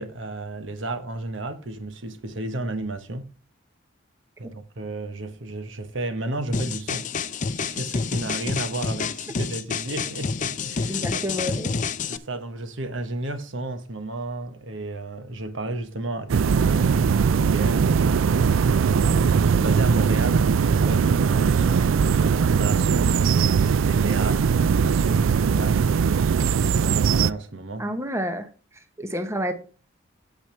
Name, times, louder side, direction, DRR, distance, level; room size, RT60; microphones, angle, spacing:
voice 1, 0.0-3.3 4.4-7.0 7.5-11.2 12.1-18.4 19.0-21.9 22.3-25.8 26.5-27.9 29.0-29.1, right 2 dB, 65° right, 1.2 m, -33 dB
sound 1, 6.5-12.2, left 5 dB, 40° left, 0.6 m, -28 dB
voice 2, 10.9-11.8 27.8-28.5 29.0-29.5, equal, 15° right, 1.0 m, -29 dB
sound 2, 16.3-27.3, right 6 dB, 85° right, 0.4 m, -20 dB
8.9 x 8.2 x 3.3 m
head